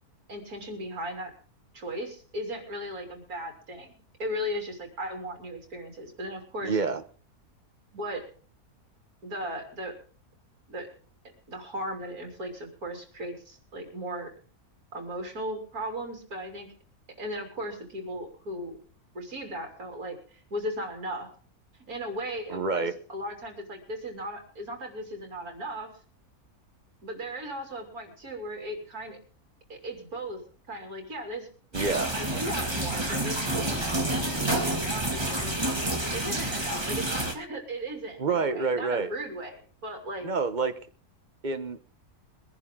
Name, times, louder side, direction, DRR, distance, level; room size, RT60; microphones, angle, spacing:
voice 1, 0.3-1.3 1.7-3.9 4.2-6.8 7.9-8.3 9.2-10.0 10.7-10.9 11.5-14.3 14.9-16.7 17.2-18.8 19.1-21.3 21.9-25.9 27.0-29.2 29.7-30.4 30.7-31.5 32.1-33.8 34.1-35.6 36.1-40.3, equal, 70° right, 4 dB, 3.8 m, -37 dB
voice 2, 6.6-7.0 22.5-22.9 31.7-32.1 38.2-39.1 40.2-40.8 41.4-41.8, right 4 dB, 35° right, 9 dB, 1.1 m, -27 dB
sound 1, 31.7-37.3, right 1 dB, 15° right, 2.3 m, -29 dB
22.0 x 11.0 x 3.7 m, 0.41 s
omnidirectional pair, 1.6 m